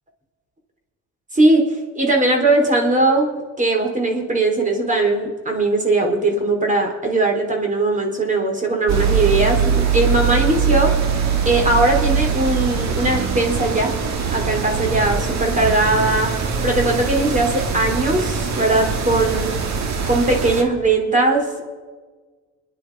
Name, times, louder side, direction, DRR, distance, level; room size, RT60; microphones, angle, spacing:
voice 1, 1.3-1.7 2.0-11.0 11.5-14.0 14.3-16.3 16.6-19.6 20.1-21.6, right 2 dB, 25° right, 2 dB, 3.5 m, -19 dB
sound 1, 8.9-20.6, right 6 dB, 65° right, 1.9 m, -22 dB
27.0 x 10.5 x 4.7 m, 1.4 s
cardioid pair, 90°, 30 cm